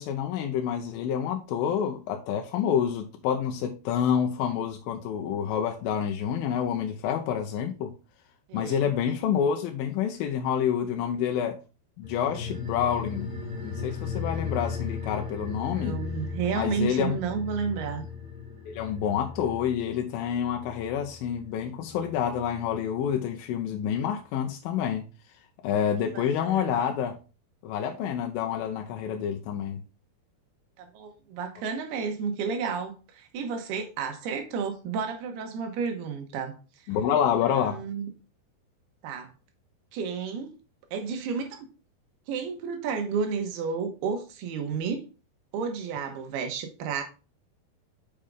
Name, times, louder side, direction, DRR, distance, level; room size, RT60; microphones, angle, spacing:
voice 1, 0.0-7.9 8.5-11.6 12.0-13.3 13.6-16.0 16.5-17.2 18.7-25.0 25.6-27.2 27.6-29.8 36.9-37.8, left 8 dB, 80° left, 2.2 m, -28 dB
voice 2, 8.5-8.9 15.7-18.1 26.1-26.8 30.8-36.6 37.5-38.1 39.0-39.3 39.9-40.5 40.9-41.7 42.3-45.0 45.5-47.0, right 6 dB, 75° right, 3.0 m, -31 dB
sound 1, 12.0-22.9 23.2-23.3, left 5 dB, ahead, 2.9 m, -37 dB
7.6 x 5.0 x 3.5 m
omnidirectional pair, 4.7 m